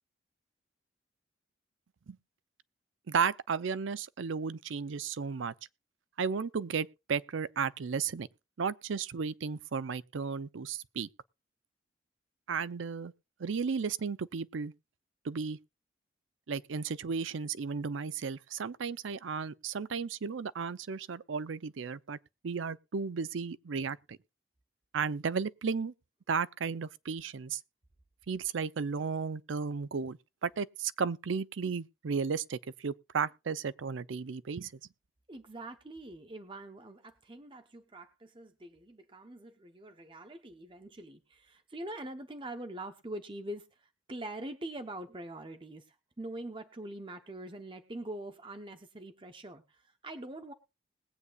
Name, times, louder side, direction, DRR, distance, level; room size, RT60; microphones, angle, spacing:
voice 1, 3.1-5.5 6.2-8.3 8.6-11.1 12.5-13.1 13.4-14.7 15.2-15.6 16.5-22.2 22.4-24.2 24.9-25.9 26.3-27.6 28.3-34.7, right 5 dB, 80° right, 0.5 m, -34 dB
voice 2, 35.3-50.5, right 1 dB, 25° right, 0.8 m, -44 dB
21.0 x 8.2 x 2.4 m
head